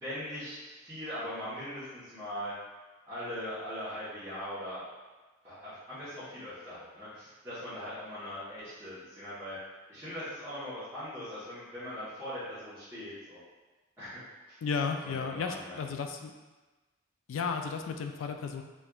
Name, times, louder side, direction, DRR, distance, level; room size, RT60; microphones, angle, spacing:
voice 1, 0.0-2.5 3.1-4.8 5.4-9.6 9.9-13.4 14.0-14.2 14.5-14.6 15.0-15.9, equal, 15° right, -15 dB, 0.9 m, -40 dB
voice 2, 14.6-16.3 17.3-18.6, left 5 dB, 70° left, 5 dB, 0.3 m, -33 dB
4.2 x 2.4 x 2.3 m, 1.2 s
head